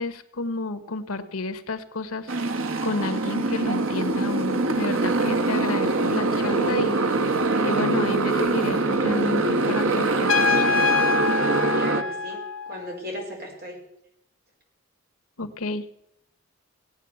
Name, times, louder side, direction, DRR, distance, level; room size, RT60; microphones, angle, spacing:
voice 1, 0.0-2.3 2.8-6.9 7.6-10.7 15.4-15.9, left 2 dB, 90° left, 9 dB, 1.2 m, -30 dB
Motorcycle, 2.3-12.0, right 3 dB, 75° right, 1.1 m, -23 dB
Trumpet, 10.3-12.9, left 4 dB, 65° left, 1.1 m, -24 dB
voice 2, 11.7-13.8, equal, 50° right, 0 dB, 4.6 m, -36 dB
17.5 x 8.7 x 7.0 m, 0.81 s
head